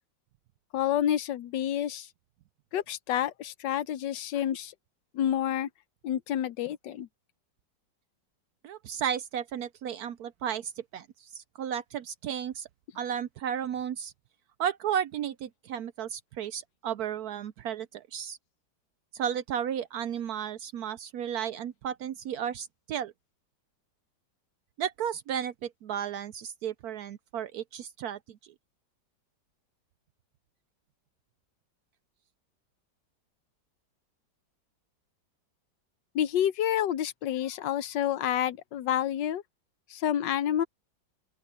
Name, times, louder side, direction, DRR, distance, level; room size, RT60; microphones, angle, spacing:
voice 1, 0.7-2.1 2.7-4.7 5.1-5.7 6.0-7.1 36.1-39.4 39.9-40.6, left 10 dB, 75° left, 1.4 m, -29 dB
voice 2, 8.6-12.7 12.9-14.1 14.6-18.4 19.1-23.1 24.8-28.4, right 9 dB, 70° right, 0.9 m, -34 dB
open air
omnidirectional pair, 2.0 m